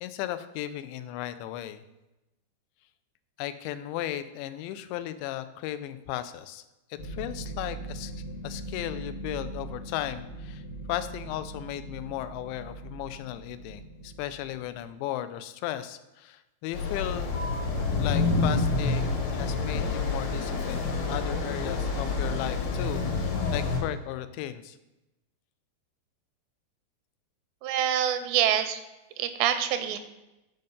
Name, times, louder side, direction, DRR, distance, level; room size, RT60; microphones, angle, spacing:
voice 1, 0.0-1.8 3.4-6.6 6.9-17.4 18.0-24.8, left 13 dB, 90° left, 12 dB, 2.9 m, -36 dB
sound 1, 7.0-14.9, right 2 dB, 50° left, 1.2 m, -41 dB
sound 2, 16.7-23.8, left 3 dB, 70° left, 3.1 m, -28 dB
voice 2, 27.6-28.8 29.2-30.0, right 10 dB, 85° right, 10 dB, 2.7 m, -26 dB
9.6 x 5.3 x 5.4 m, 0.96 s
omnidirectional pair, 5.0 m